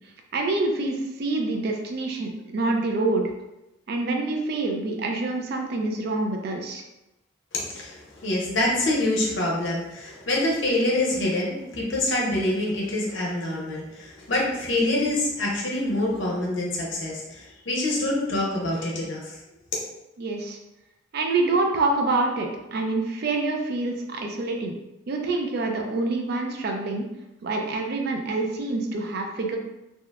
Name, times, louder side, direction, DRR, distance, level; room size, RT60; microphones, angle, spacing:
voice 1, 0.3-3.3 3.9-6.8 20.2-20.6 21.1-24.7 25.1-27.1 27.4-29.6, right 2 dB, 50° right, 3 dB, 0.3 m, -26 dB
voice 2, 7.5-19.4, left 1 dB, 65° left, -4 dB, 0.7 m, -26 dB
2.8 x 2.1 x 2.3 m, 0.94 s
head